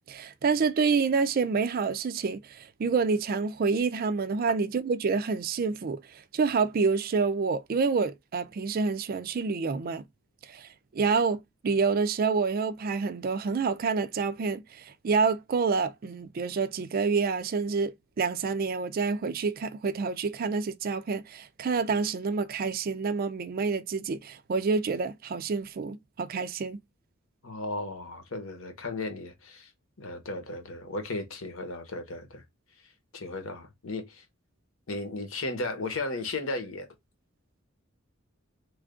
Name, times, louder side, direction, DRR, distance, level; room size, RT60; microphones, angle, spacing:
voice 1, 0.1-6.0 6.3-10.0 10.5-26.8, right 4 dB, 45° right, 0.4 m, -28 dB
voice 2, 27.4-29.7 30.0-32.4 33.1-34.2 34.9-36.9, left 2 dB, 70° left, 1.0 m, -35 dB
3.2 x 2.4 x 3.6 m
head